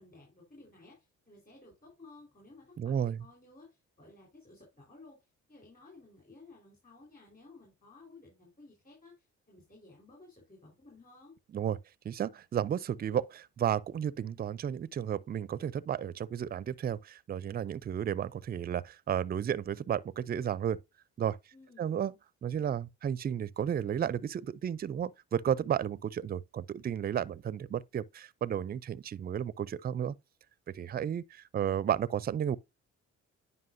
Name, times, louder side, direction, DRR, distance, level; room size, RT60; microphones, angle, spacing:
voice 1, 0.0-11.3 21.5-22.0, left 2 dB, 30° left, 4.2 m, -56 dB
voice 2, 2.8-3.2 11.5-11.8 12.0-20.8 21.2-21.4 21.8-22.1 22.4-30.1 30.7-32.6, right 9 dB, 30° right, 0.4 m, -33 dB
9.6 x 5.4 x 2.6 m
cardioid pair, 90°, 30 cm